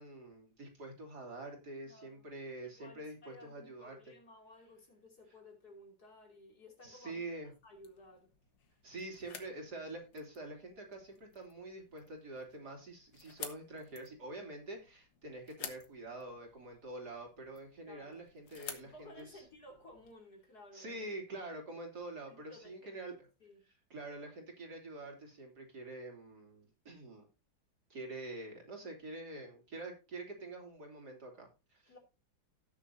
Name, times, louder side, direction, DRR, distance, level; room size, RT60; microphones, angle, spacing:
voice 1, 0.0-4.1 6.8-7.5 8.8-19.4 20.7-23.1 23.7-27.3 27.9-31.9, right 2 dB, 55° right, 3.5 m, -46 dB
voice 2, 1.8-2.3 2.6-7.2 7.6-8.3 17.9-18.3 18.9-21.0 22.3-23.0 23.4-23.6 31.9-32.0, left 1 dB, 55° left, 3.5 m, -56 dB
sound 1, 7.3-20.1, left 6 dB, 70° left, 2.1 m, -53 dB
17.5 x 6.9 x 2.7 m
omnidirectional pair, 2.1 m